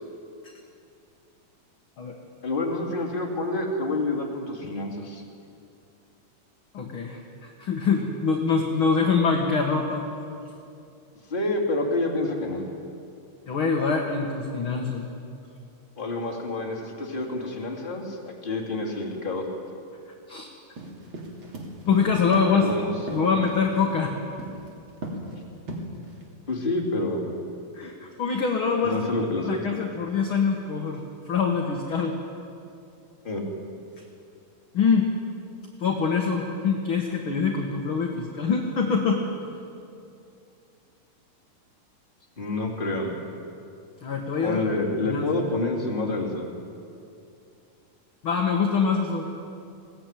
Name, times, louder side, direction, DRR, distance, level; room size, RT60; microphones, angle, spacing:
voice 1, 2.4-5.2 11.3-12.6 16.0-19.4 22.5-23.3 26.5-27.3 28.8-29.8 33.2-33.4 42.4-43.1 44.4-46.5, left 2 dB, 15° left, -1 dB, 2.7 m, -28 dB
voice 2, 6.7-10.0 13.5-15.1 20.3-20.5 21.9-22.7 23.1-24.2 27.7-29.0 29.4-32.1 34.7-35.1 35.8-39.2 44.0-44.6 45.0-45.5 48.2-49.3, left 5 dB, 50° left, 1 dB, 1.7 m, -24 dB
sound 1, 20.8-24.0 24.4-24.7 25.0-25.3 25.7-26.2, right 2 dB, 35° right, 3.4 m, -35 dB
21.5 x 17.5 x 9.2 m, 2.6 s
omnidirectional pair, 4.3 m